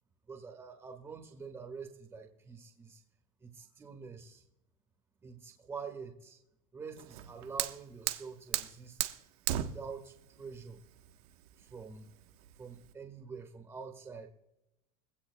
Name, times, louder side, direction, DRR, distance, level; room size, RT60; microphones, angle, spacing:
voice 1, 0.3-3.0 3.4-4.4 5.2-6.4 6.7-9.1 9.6-10.8 11.6-12.1 12.6-14.3, right 5 dB, 15° right, 2 dB, 1.5 m, -46 dB
Fire, 7.0-12.9, right 13 dB, 75° right, 1.2 m, -38 dB
22.0 x 16.5 x 2.3 m, 0.86 s
supercardioid pair, 170°, 20 cm